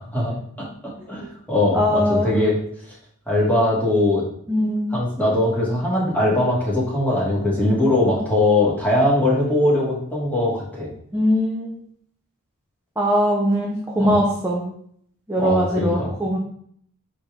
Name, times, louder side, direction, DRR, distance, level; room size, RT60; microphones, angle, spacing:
voice 1, 0.0-2.6 3.3-4.2 4.9-10.9 14.0-14.2 15.4-16.1, left 1 dB, 5° left, -6 dB, 2.0 m, -21 dB
voice 2, 1.7-2.4 4.5-5.0 11.1-11.8 13.0-14.7 15.3-16.4, equal, 10° right, -3 dB, 0.7 m, -21 dB
4.4 x 4.2 x 5.1 m, 0.65 s
head